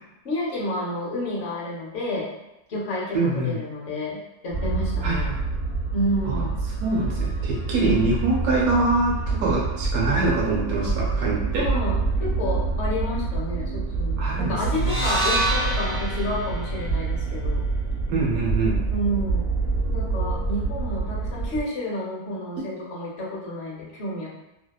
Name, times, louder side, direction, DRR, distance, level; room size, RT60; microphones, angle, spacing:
voice 1, 0.2-2.3 2.7-5.3 5.9-6.6 7.8-8.1 11.5-17.6 18.9-19.5 19.9-24.3, left 1 dB, 60° left, -4 dB, 0.7 m, -30 dB
voice 2, 3.1-3.6 5.0-5.4 6.2-6.4 6.8-11.6 14.2-15.0 18.1-18.8, right 2 dB, 65° right, -4 dB, 1.1 m, -24 dB
sound 1, 4.5-21.6, right 3 dB, 15° left, 1.0 m, -27 dB
sound 2, 14.8-19.0, right 1 dB, 40° left, 1.1 m, -29 dB
2.8 x 2.1 x 2.2 m, 0.94 s
omnidirectional pair, 1.8 m